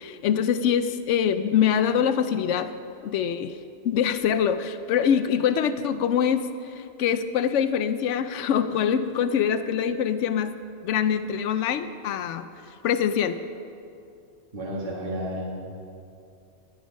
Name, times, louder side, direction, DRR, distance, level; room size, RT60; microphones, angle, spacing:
voice 1, 0.0-2.7 3.0-3.6 3.8-10.5 10.8-12.5 12.8-13.4, left 8 dB, 90° left, 11 dB, 0.9 m, -24 dB
voice 2, 14.5-15.7, equal, 50° right, -4 dB, 2.2 m, -32 dB
12.5 x 11.5 x 5.3 m, 2.5 s
omnidirectional pair, 1.2 m